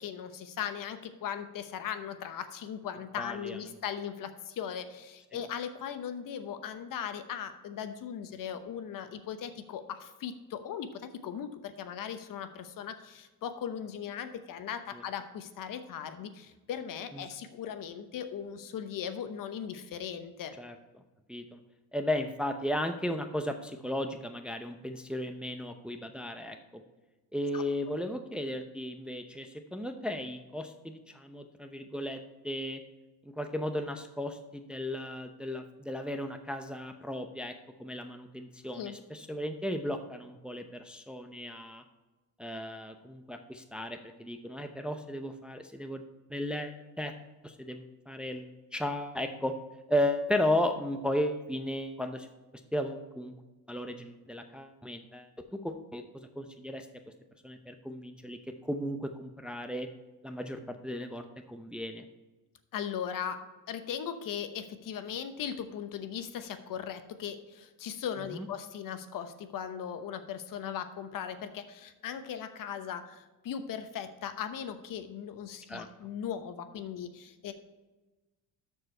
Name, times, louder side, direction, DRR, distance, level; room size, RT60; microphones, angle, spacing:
voice 1, 0.0-20.6 27.5-27.6 38.7-39.0 62.7-77.5, left 8 dB, 55° left, 10 dB, 1.0 m, -38 dB
voice 2, 3.2-3.6 14.9-15.0 17.1-17.3 20.6-20.7 21.3-21.6 21.9-26.6 27.3-32.8 33.3-37.5 37.8-41.8 42.4-46.0 46.3-47.1 47.4-49.6 49.9-52.3 52.7-53.3 53.7-56.9 57.4-59.9 60.2-62.0 68.3-68.5 75.7-75.9, left 1 dB, ahead, 6 dB, 0.6 m, -35 dB
12.5 x 4.8 x 4.4 m, 1.2 s
supercardioid pair, 95°, 40 cm